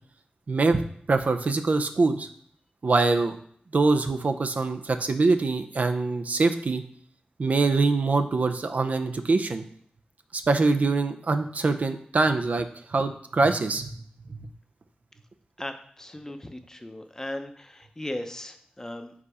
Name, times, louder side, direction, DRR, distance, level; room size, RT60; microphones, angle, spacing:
voice 1, 0.5-0.8 1.1-2.3 2.8-3.4 3.7-6.8 7.4-9.6 10.3-13.9 14.3-14.5, right 3 dB, 55° right, 8 dB, 0.5 m, -24 dB
voice 2, 15.6-19.1, left 1 dB, 20° left, 7 dB, 0.6 m, -37 dB
4.8 x 4.1 x 4.8 m, 0.62 s
wide cardioid pair, 70°, 3 cm